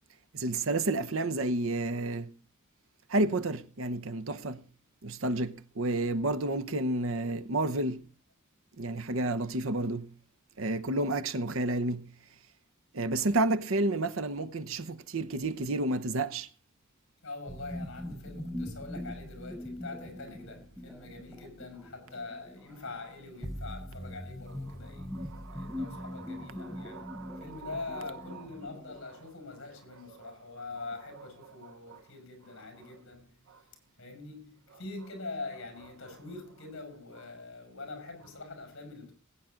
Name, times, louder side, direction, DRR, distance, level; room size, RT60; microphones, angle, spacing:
voice 1, 0.3-2.3 3.1-4.6 5.0-8.1 8.8-10.1 10.6-12.1 12.9-16.5 25.3-26.5 26.9-27.4 31.9-32.0, right 2 dB, 70° right, 0.9 m, -31 dB
voice 2, 17.2-33.7 34.0-39.1, left 3 dB, 65° left, 5.9 m, -44 dB
sound 1, 17.5-29.0, left 1 dB, ahead, 1.1 m, -42 dB
20.5 x 9.3 x 3.8 m
head